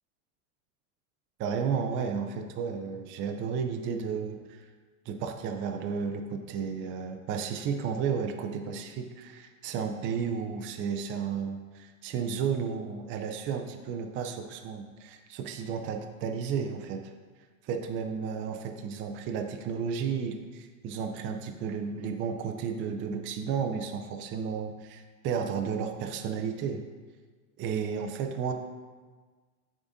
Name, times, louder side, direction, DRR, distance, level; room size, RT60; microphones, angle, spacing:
voice 1, 1.4-4.6 5.1-17.1 17.6-26.8 27.6-28.5, right 6 dB, 30° right, 5 dB, 0.4 m, -33 dB
9.6 x 3.8 x 2.6 m, 1.4 s
supercardioid pair, 115°, 44 cm